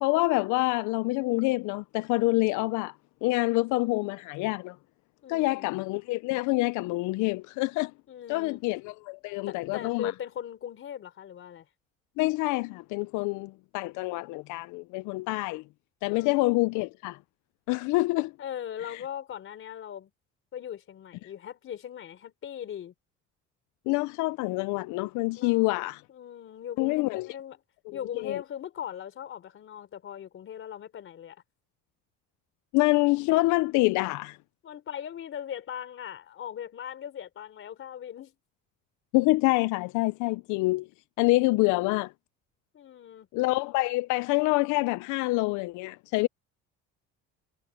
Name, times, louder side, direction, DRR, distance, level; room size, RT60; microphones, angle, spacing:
voice 1, 0.0-2.9 3.2-4.8 5.3-7.9 8.3-10.1 12.2-15.6 16.0-17.2 17.7-18.3 18.9-19.0 23.9-26.0 26.8-27.3 28.2-28.4 32.7-34.4 39.1-40.9 41.2-42.1 43.3-46.3, left 22 dB, 85° left, 0.5 m, -26 dB
voice 2, 5.2-5.7 8.1-8.6 9.5-11.7 16.1-16.5 18.4-20.1 20.5-22.9 25.4-25.7 26.1-27.6 27.9-31.4 34.6-38.4 42.7-43.3, left 9 dB, 45° left, 3.8 m, -39 dB
cardioid pair, 150°, 29 cm